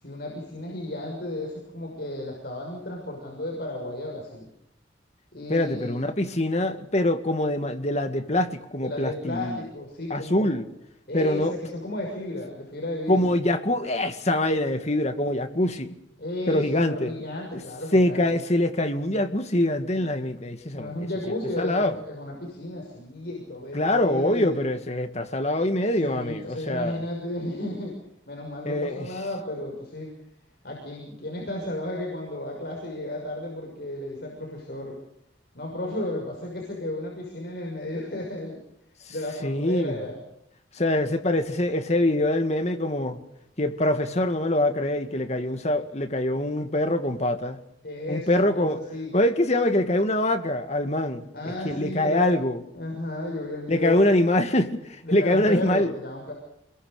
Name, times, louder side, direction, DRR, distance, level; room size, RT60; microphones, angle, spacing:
voice 1, 0.0-4.5 5.3-6.0 8.8-10.5 11.1-13.3 16.2-18.3 20.7-24.6 25.9-28.0 28.3-30.1 30.6-35.0 35.5-38.6 39.1-40.2 47.8-49.1 51.3-52.3 52.7-54.1 55.0-56.3, left 1 dB, 55° left, 6.3 m, -33 dB
voice 2, 5.5-9.6 10.1-10.7 11.1-11.5 13.1-16.0 16.5-17.1 17.9-20.9 21.6-22.0 23.7-27.0 28.7-29.1 39.1-39.2 39.4-40.0 40.7-43.2 43.6-47.6 48.1-48.8 49.1-51.3 51.6-52.6 53.7-55.9, left 1 dB, 35° left, 2.1 m, -24 dB
28.0 x 22.5 x 6.7 m
head